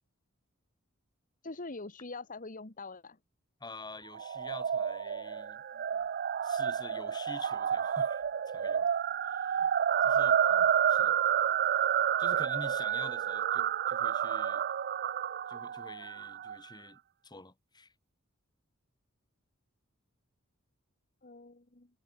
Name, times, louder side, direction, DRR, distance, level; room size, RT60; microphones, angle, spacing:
voice 1, 1.4-3.2 21.2-21.9, left 3 dB, 40° left, 1.6 m, -43 dB
voice 2, 3.6-5.6 6.4-8.9 9.2-9.7 10.0-11.2 12.2-14.7 15.5-17.9, left 2 dB, 20° left, 3.9 m, -48 dB
sound 1, 4.1-16.6, right 9 dB, 50° right, 0.4 m, -30 dB
head